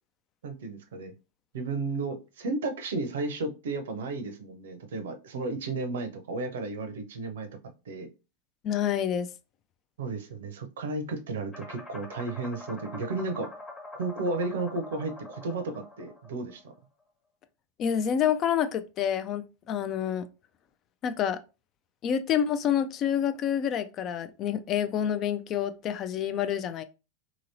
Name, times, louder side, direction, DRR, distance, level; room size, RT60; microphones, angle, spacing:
voice 1, 0.4-1.1 1.5-7.5 7.8-8.1 10.0-13.5 14.0-16.7, right 3 dB, 70° right, 0.6 m, -33 dB
voice 2, 8.6-9.3 17.8-20.3 21.0-21.4 22.0-26.8, left 9 dB, 40° left, 0.3 m, -28 dB
sound 1, 11.5-16.8, left 2 dB, 25° left, 1.2 m, -44 dB
2.9 x 2.8 x 2.6 m
figure-of-eight pair, 90°, 0 cm